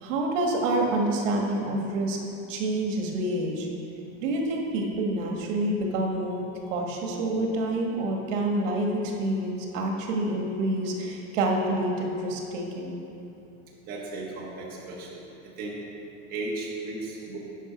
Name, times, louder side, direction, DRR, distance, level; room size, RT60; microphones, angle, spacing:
voice 1, 0.0-2.2 2.5-3.7 4.2-6.4 6.7-12.9, right 1 dB, 90° right, 1 dB, 1.5 m, -27 dB
voice 2, 13.9-15.8 16.3-17.4, right 2 dB, 25° right, -4 dB, 1.3 m, -35 dB
9.0 x 5.1 x 6.1 m, 2.8 s
supercardioid pair, 180°, 36 cm